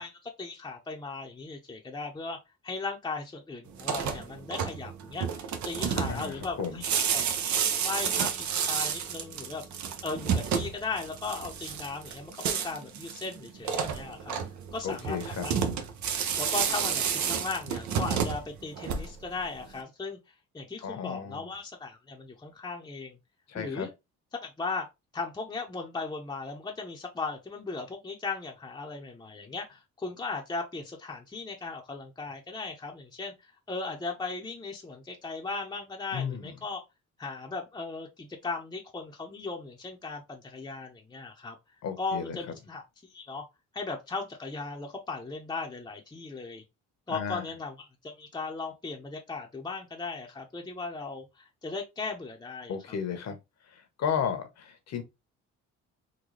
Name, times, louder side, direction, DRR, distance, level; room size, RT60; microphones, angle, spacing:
voice 1, 0.0-2.4 2.6-5.3 5.6-9.6 10.0-14.4 14.7-15.2 15.4-15.5 16.4-20.2 20.5-23.2 23.5-23.9 24.4-24.9 25.1-36.8 37.2-41.6 42.0-42.8 43.1-43.4 43.7-46.6 47.1-52.7, left 3 dB, 15° left, 0.7 m, -37 dB
sound 1, 3.7-19.4, right 7 dB, 70° right, 0.7 m, -31 dB
voice 2, 6.1-6.8 14.8-15.5 20.8-21.5 23.5-23.9 36.1-36.5 41.8-42.5 47.1-47.4 52.7-53.4 53.7-55.0, left 7 dB, 60° left, 1.0 m, -34 dB
3.9 x 2.2 x 3.1 m
cardioid pair, 90°, 30 cm